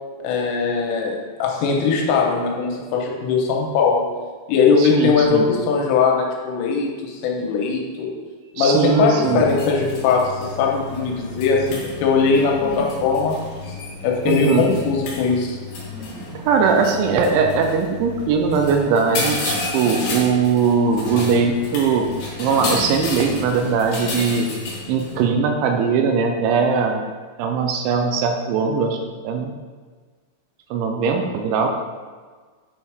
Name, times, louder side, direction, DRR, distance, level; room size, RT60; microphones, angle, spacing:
voice 1, 0.2-4.0 4.5-8.1 8.6-13.4 14.0-15.6, left 5 dB, 90° left, -1 dB, 3.4 m, -20 dB
voice 2, 4.8-5.5 8.6-9.4 14.3-14.7 16.4-22.1 22.4-24.5 24.9-27.0 27.4-29.0 29.2-29.5 30.7-31.7, right 5 dB, 80° right, 3 dB, 2.8 m, -20 dB
sound 1, 9.2-25.2, left 2 dB, 75° left, 1.7 m, -31 dB
9.1 x 3.5 x 4.6 m, 1.5 s
omnidirectional pair, 5.8 m